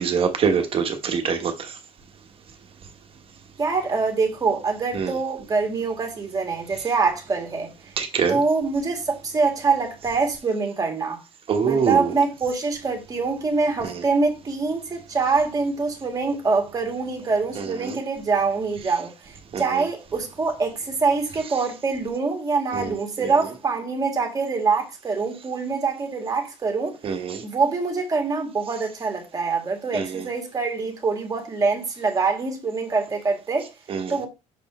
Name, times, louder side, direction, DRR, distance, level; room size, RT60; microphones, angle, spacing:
voice 1, 0.0-1.8 4.9-5.1 8.0-8.4 11.5-12.2 13.8-14.0 17.5-18.0 19.5-19.8 22.7-23.3 27.0-27.4 29.9-30.3 33.9-34.1, right 6 dB, 45° right, 1.3 m, -25 dB
voice 2, 3.6-7.7 8.3-11.2 11.6-27.0 27.4-33.7 34.1-34.3, right 4 dB, 25° right, 1.9 m, -24 dB
6.6 x 4.1 x 3.6 m
cardioid pair, 130°, 13 cm